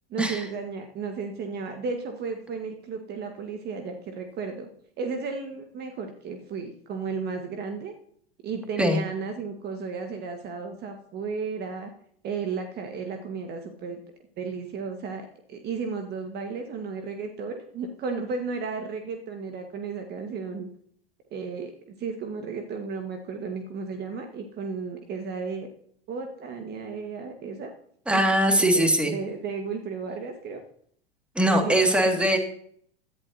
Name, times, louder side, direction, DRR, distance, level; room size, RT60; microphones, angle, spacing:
voice 1, 0.1-4.7 5.0-7.9 8.4-11.9 12.2-14.0 14.4-20.7 21.3-25.7 26.1-27.7 28.1-28.2 28.6-30.6 31.4-32.3, right 5 dB, 35° right, 5 dB, 1.4 m, -34 dB
voice 2, 28.1-29.1 31.4-32.4, right 1 dB, 5° right, 4 dB, 2.1 m, -21 dB
16.5 x 11.0 x 2.7 m, 0.64 s
figure-of-eight pair, 90°, 31 cm